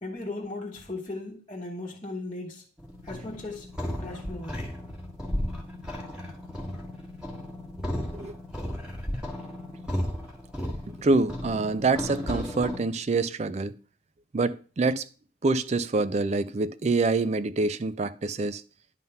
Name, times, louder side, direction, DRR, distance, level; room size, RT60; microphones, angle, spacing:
voice 1, 0.0-2.6 3.0-4.7, left 2 dB, 30° left, 1.1 m, -37 dB
sound 1, 2.8-12.8, left 1 dB, 5° right, 1.6 m, -35 dB
voice 2, 11.0-13.7 14.3-15.0 15.4-18.6, right 3 dB, 35° right, 0.4 m, -26 dB
11.0 x 3.8 x 5.5 m
head